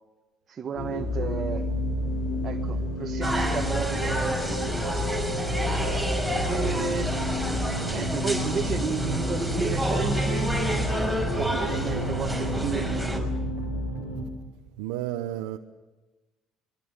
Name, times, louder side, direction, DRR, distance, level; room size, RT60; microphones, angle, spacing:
voice 1, 0.5-1.7 2.4-5.2 6.4-7.1 7.9-10.5 11.2-13.3, right 6 dB, 40° right, 1.8 m, -33 dB
sound 1, 0.7-14.2, left 1 dB, 85° left, 5.9 m, -30 dB
sound 2, 3.2-13.2, right 1 dB, 5° left, 5.8 m, -29 dB
voice 2, 14.8-15.6, right 13 dB, 90° right, 1.0 m, -32 dB
28.5 x 22.5 x 6.7 m
supercardioid pair, 90°, 0 cm